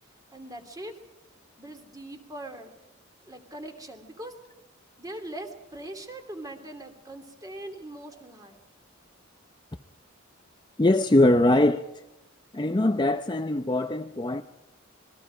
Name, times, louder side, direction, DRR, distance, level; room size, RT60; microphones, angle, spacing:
voice 1, 0.3-1.0 1.6-2.7 3.3-4.4 5.0-8.6, right 1 dB, 20° right, 2.7 m, -41 dB
voice 2, 10.8-11.8 12.5-14.4, left 1 dB, 20° left, 0.7 m, -22 dB
26.5 x 21.0 x 5.0 m
head